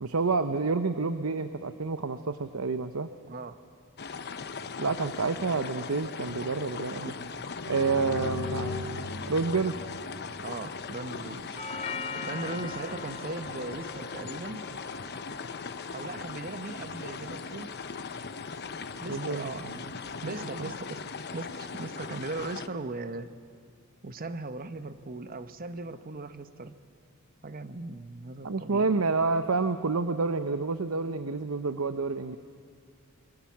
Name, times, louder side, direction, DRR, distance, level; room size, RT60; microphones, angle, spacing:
voice 1, 0.0-3.1 4.8-7.1 7.7-8.8 9.3-9.8 19.1-19.7 20.2-20.3 28.4-32.4, right 4 dB, 70° right, 10 dB, 0.8 m, -29 dB
voice 2, 3.3-3.6 10.4-11.6 12.2-14.7 15.9-17.7 19.0-19.7 20.2-21.0 21.3-23.3 24.0-26.7 27.4-29.1, right 3 dB, 40° right, 11 dB, 1.0 m, -38 dB
sound 1, 4.0-22.7, left 5 dB, 50° left, 0.9 m, -39 dB
sound 2, 7.4-11.2, left 3 dB, 80° left, 2.2 m, -38 dB
Doorbell, 11.6-19.6, left 4 dB, 30° left, 1.4 m, -44 dB
26.0 x 23.5 x 7.3 m, 2.3 s
head